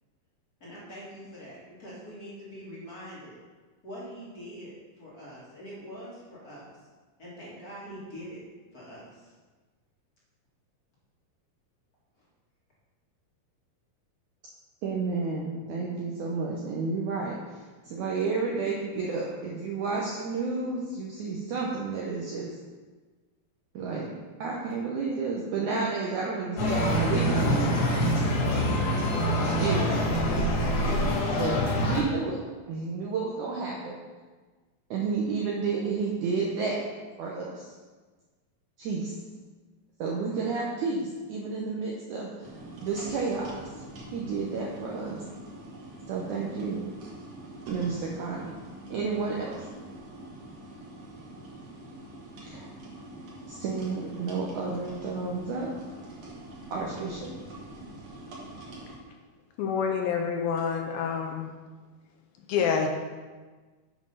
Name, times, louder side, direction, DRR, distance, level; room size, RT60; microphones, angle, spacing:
voice 1, 0.6-3.4 3.8-6.6 7.2-8.4 8.7-9.3, equal, 35° left, -8 dB, 1.5 m, -43 dB
voice 2, 14.8-17.4 17.8-22.5 23.8-24.1 24.4-27.8 28.4-28.7 29.6-30.0 31.3-32.4 32.7-34.0 34.9-36.8 37.2-37.6 38.8-39.1 40.0-42.3 42.8-43.7 44.1-45.2 46.1-46.8 47.7-48.5 48.9-49.6 52.4-52.7 53.5-55.7 56.7-57.3, right 4 dB, 75° right, -2 dB, 1.8 m, -31 dB
sound 1, 26.6-32.0, equal, 60° left, 2.7 m, -25 dB
sound 2, 42.4-59.0, right 1 dB, 55° right, 2.2 m, -44 dB
voice 3, 59.6-61.5 62.5-62.9, left 6 dB, 80° left, 2 dB, 2.4 m, -27 dB
7.6 x 5.2 x 5.5 m, 1.3 s
omnidirectional pair, 4.5 m